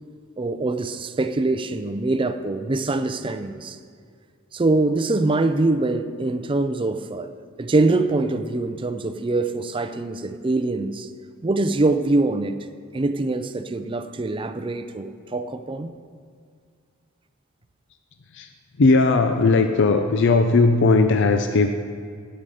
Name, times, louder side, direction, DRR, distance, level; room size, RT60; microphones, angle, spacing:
voice 1, 0.4-3.8 4.5-7.3 7.6-11.1 11.4-12.6 12.9-15.9, right 2 dB, 25° right, 10 dB, 0.4 m, -24 dB
voice 2, 18.8-21.7, left 3 dB, 60° left, 7 dB, 0.5 m, -18 dB
12.5 x 9.2 x 4.9 m, 2.1 s
head